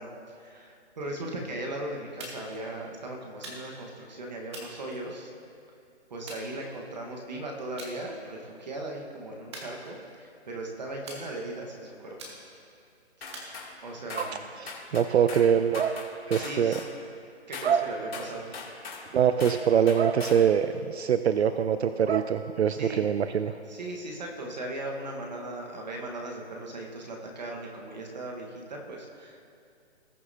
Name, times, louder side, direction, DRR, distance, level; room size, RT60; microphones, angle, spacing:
voice 1, 0.0-5.3 6.1-12.2 13.2-13.3 13.8-14.3 16.3-16.9 17.5-18.5 22.8-23.2 23.7-29.4, right 1 dB, 40° right, 0 dB, 1.2 m, -38 dB
sound 1, 2.2-2.6 3.4-3.9 4.5-5.5 6.3-7.1 7.8-8.0 8.4-8.7 9.5-10.3 11.1-11.7 12.2-12.7 13.3-14.1, right 1 dB, 25° right, 1.3 m, -45 dB
sound 2, 13.2-13.7 14.1-14.3 14.7-15.5 15.7-16.9 17.5-17.7 18.1-19.0 19.4-19.6 19.9-20.4, left 5 dB, 60° left, 2.6 m, -40 dB
voice 2, 14.1-16.7 17.6-17.9 19.1-23.5, right 8 dB, 70° right, 10 dB, 0.5 m, -24 dB
19.0 x 6.5 x 2.7 m, 2.4 s
hypercardioid pair, 170°, 34 cm